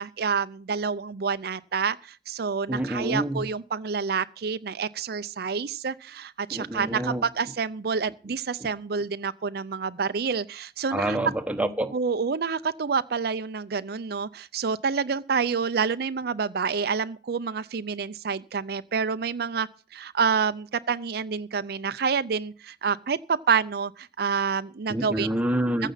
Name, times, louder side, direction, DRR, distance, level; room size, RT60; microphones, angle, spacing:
voice 1, 0.0-11.2 11.9-25.3, right 5 dB, 60° right, 0.5 m, -28 dB
voice 2, 2.7-3.4 6.5-7.2 10.9-11.9 24.9-25.9, right 1 dB, 10° right, 1.0 m, -27 dB
15.0 x 8.2 x 5.7 m
head